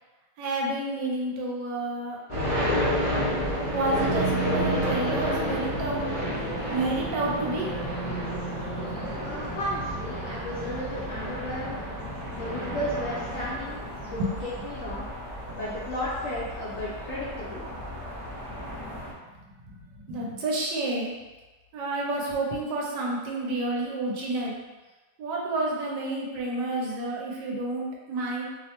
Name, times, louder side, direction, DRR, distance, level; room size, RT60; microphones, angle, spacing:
voice 1, 0.4-2.2 3.7-6.0 6.7-7.7 10.6-10.7 14.2-14.3 20.1-21.1 21.7-24.6 25.2-28.5, right 2 dB, 75° right, -2 dB, 1.2 m, -29 dB
sound 1, 2.3-19.1, equal, 45° left, 0.4 m, -31 dB
voice 2, 9.2-11.8 12.3-15.0 15.5-17.8, left 1 dB, 65° left, -9 dB, 0.8 m, -34 dB
3.0 x 2.1 x 2.8 m, 1.2 s
omnidirectional pair, 2.0 m